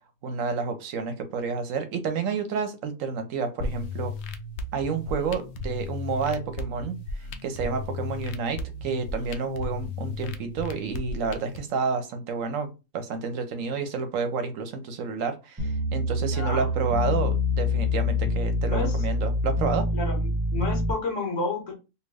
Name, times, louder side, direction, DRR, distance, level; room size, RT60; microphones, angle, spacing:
voice 1, 0.2-4.1 4.7-7.0 7.4-19.8, right 5 dB, 65° right, 8 dB, 0.9 m, -30 dB
sound 1, 3.6-11.6, left 2 dB, 85° left, 0.5 m, -35 dB
sound 2, 15.6-20.9, left 2 dB, 10° right, 0.9 m, -26 dB
voice 2, 16.2-16.7 18.7-19.0 19.9-20.2 20.5-21.7, left 3 dB, 55° left, 2 dB, 1.4 m, -30 dB
3.5 x 2.3 x 3.3 m, 0.28 s
omnidirectional pair, 1.7 m